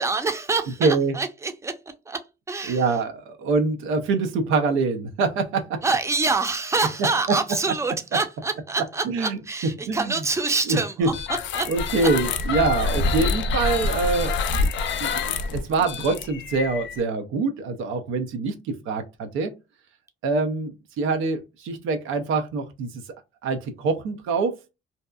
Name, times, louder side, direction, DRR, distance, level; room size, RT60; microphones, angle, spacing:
voice 1, 0.0-1.7 2.1-2.2 2.5-2.8 5.8-11.1 11.5-11.7 12.0-12.1, right 3 dB, 15° right, 0.5 m, -26 dB
voice 2, 0.8-1.1 2.6-5.8 7.3-7.4 9.0-10.2 10.7-11.1 11.7-14.5 15.0-19.5 20.2-23.0 23.4-24.6, right 4 dB, 90° right, 0.5 m, -25 dB
sound 1, 11.1-17.0, left 4 dB, 70° left, 0.4 m, -26 dB
2.7 x 2.3 x 2.2 m
cardioid pair, 90°, 20 cm